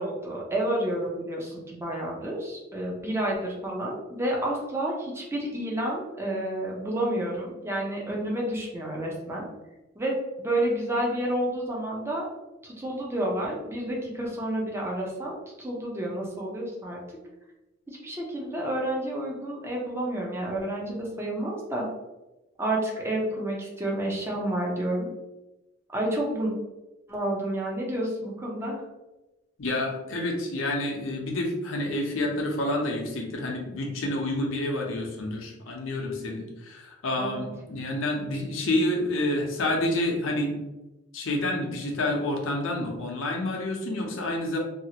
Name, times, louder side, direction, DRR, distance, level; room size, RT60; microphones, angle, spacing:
voice 1, 0.0-9.5 10.0-12.3 12.6-17.0 17.9-21.8 22.6-25.1 25.9-26.5 27.1-28.8 37.2-37.4, right 1 dB, 15° right, -3 dB, 0.6 m, -30 dB
voice 2, 29.6-40.5 41.1-44.6, left 1 dB, 85° left, 0 dB, 0.7 m, -28 dB
2.7 x 2.4 x 2.8 m, 1.0 s
head